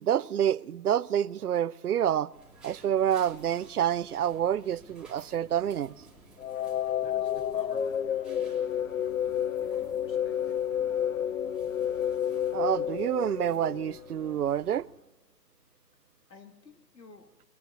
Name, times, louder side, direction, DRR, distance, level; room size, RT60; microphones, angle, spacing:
voice 1, 0.0-2.3 2.6-5.9 12.5-14.9, right 10 dB, 65° right, 0.6 m, -28 dB
sound 1, 2.3-14.8, right 2 dB, ahead, 2.8 m, -54 dB
sound 2, 6.4-14.4, left 9 dB, 55° left, 0.6 m, -30 dB
voice 2, 7.0-10.6 16.3-17.4, left 3 dB, 85° left, 1.8 m, -53 dB
22.0 x 18.0 x 2.9 m
figure-of-eight pair, 145°, 49 cm